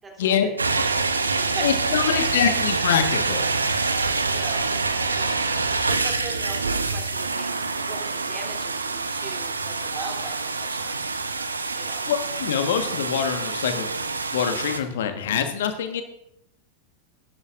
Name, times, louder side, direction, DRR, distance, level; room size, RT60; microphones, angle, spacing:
voice 1, 0.0-0.5 0.9-1.7 4.3-5.5 5.9-7.5 7.9-11.0 11.7-12.1, right 3 dB, 15° right, 1 dB, 3.0 m, -40 dB
sound 1, 0.6-14.8, right 3 dB, 75° right, 0.8 m, -26 dB
voice 2, 1.6-3.5 12.0-13.9 14.3-16.0, left 8 dB, 60° left, 7 dB, 1.4 m, -24 dB
16.5 x 11.0 x 2.5 m, 0.79 s
figure-of-eight pair, 90°, 0 cm